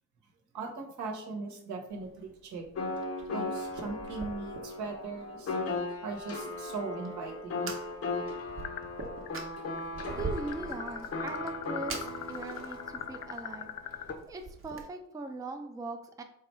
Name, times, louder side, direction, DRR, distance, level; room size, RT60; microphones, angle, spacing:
voice 1, 0.5-2.7 3.3-5.5 6.0-7.7, right 3 dB, 75° right, 2 dB, 0.9 m, -39 dB
Fire, 1.9-14.8, right 3 dB, 45° right, 0.8 m, -45 dB
sound 1, 2.8-14.1, left 2 dB, 50° left, 0.7 m, -38 dB
sound 2, 8.6-9.3 9.5-14.1, left 10 dB, 80° left, 0.5 m, -40 dB
voice 2, 10.2-13.7 14.3-16.2, right 3 dB, 10° right, 5 dB, 0.4 m, -40 dB
3.6 x 2.2 x 4.3 m, 0.72 s
cardioid pair, 90°, 30 cm